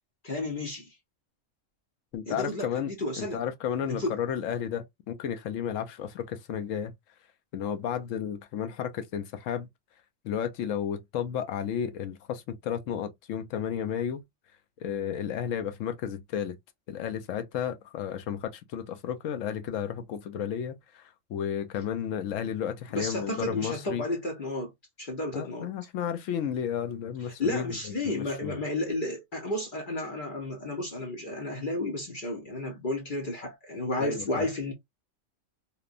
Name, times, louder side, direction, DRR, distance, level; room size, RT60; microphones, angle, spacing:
voice 1, 0.2-0.9 2.3-3.4 3.9-4.2 22.9-24.7 25.0-25.7 27.4-34.7, left 1 dB, 45° left, 0.8 m, -32 dB
voice 2, 2.1-2.9 3.2-6.9 7.5-9.7 10.2-14.2 14.8-16.6 16.9-24.0 25.3-28.6 34.0-34.5, left 8 dB, 80° left, 0.9 m, -33 dB
2.9 x 2.1 x 2.4 m
omnidirectional pair, 1.3 m